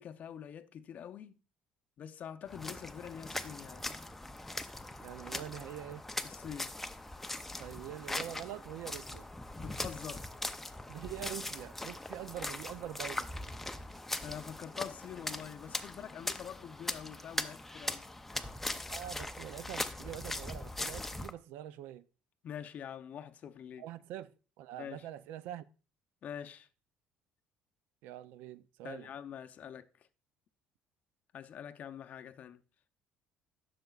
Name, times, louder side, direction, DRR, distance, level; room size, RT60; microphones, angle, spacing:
voice 1, 0.0-1.4 2.0-3.9 6.2-6.7 9.6-10.3 14.2-18.0 22.4-23.8 24.8-25.1 26.2-26.7 28.8-30.1 31.3-32.6, left 9 dB, 50° left, 0.6 m, -45 dB
sound 1, 2.5-21.3, left 2 dB, 5° left, 0.5 m, -40 dB
voice 2, 5.0-6.0 7.6-9.3 10.9-13.3 18.9-22.0 23.8-24.3 24.6-25.6 28.0-29.1, right 12 dB, 80° right, 0.4 m, -44 dB
11.5 x 6.5 x 2.4 m
cardioid pair, 125°, 3 cm